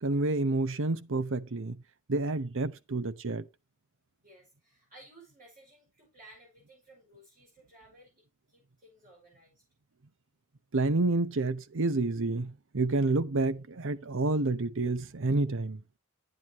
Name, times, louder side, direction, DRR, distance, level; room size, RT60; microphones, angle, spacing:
voice 1, 0.0-1.8 2.1-3.4 10.7-15.8, right 2 dB, 65° right, 0.8 m, -29 dB
voice 2, 4.2-9.6, right 1 dB, 40° right, 5.6 m, -57 dB
9.8 x 9.1 x 3.0 m
head